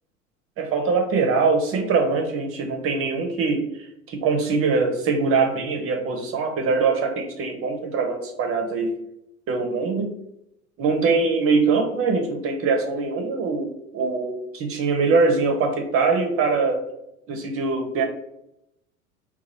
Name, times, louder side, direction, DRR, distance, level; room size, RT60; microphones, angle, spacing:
voice 1, 0.6-3.6 4.1-8.9 9.5-10.1 10.8-16.8 17.3-18.0, right 4 dB, 35° right, 4 dB, 0.6 m, -22 dB
2.9 x 2.3 x 4.0 m, 0.80 s
hypercardioid pair, 80°, 42 cm